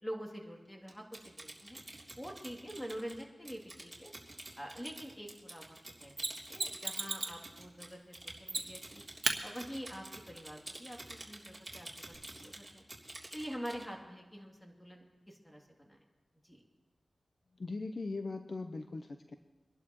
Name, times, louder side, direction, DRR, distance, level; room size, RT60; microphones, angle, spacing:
voice 1, 0.0-1.8 2.1-4.1 4.6-9.0 9.4-12.8 13.3-16.0 16.4-16.6, equal, 15° left, 0 dB, 2.8 m, -46 dB
Typing, 0.9-13.9, right 1 dB, 20° right, 3.3 m, -49 dB
Mechanisms, 6.2-7.4 8.5-8.9 9.2-9.4 12.1-12.2, right 3 dB, 55° right, 1.4 m, -35 dB
voice 2, 17.6-19.4, left 3 dB, 55° left, 6 dB, 0.7 m, -40 dB
24.5 x 11.5 x 3.1 m, 1.2 s
cardioid pair, 45°, 0 cm